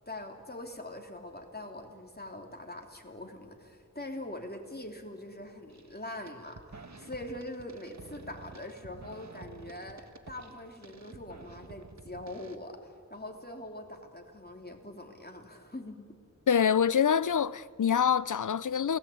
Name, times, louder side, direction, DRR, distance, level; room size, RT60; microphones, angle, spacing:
voice 1, 0.0-16.1, left 1 dB, 30° left, 3.3 m, -43 dB
sound 1, 5.7-6.0 6.3-12.6, right 3 dB, 65° right, 1.6 m, -50 dB
voice 2, 16.5-19.0, left 7 dB, 80° left, 0.6 m, -25 dB
28.0 x 19.0 x 8.7 m
wide cardioid pair, 45°, 30 cm